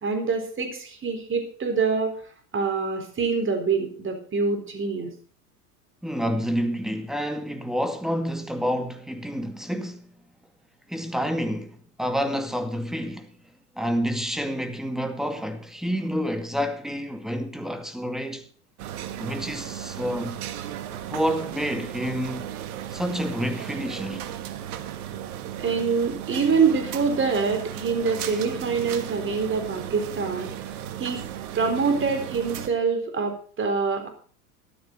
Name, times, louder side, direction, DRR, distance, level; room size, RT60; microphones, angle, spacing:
voice 1, 0.0-2.1 2.5-5.1 25.6-30.5 31.0-31.2 31.6-34.1, right 5 dB, 25° right, 4.0 m, -25 dB
voice 2, 6.0-10.0 10.9-13.3 13.8-18.5 19.2-20.4 21.1-22.5 22.9-24.2 28.2-28.4, equal, ahead, 2.1 m, -29 dB
sound 1, 18.8-32.7, right 11 dB, 70° right, 1.7 m, -35 dB
14.0 x 12.0 x 3.9 m
hypercardioid pair, 90°, 45 cm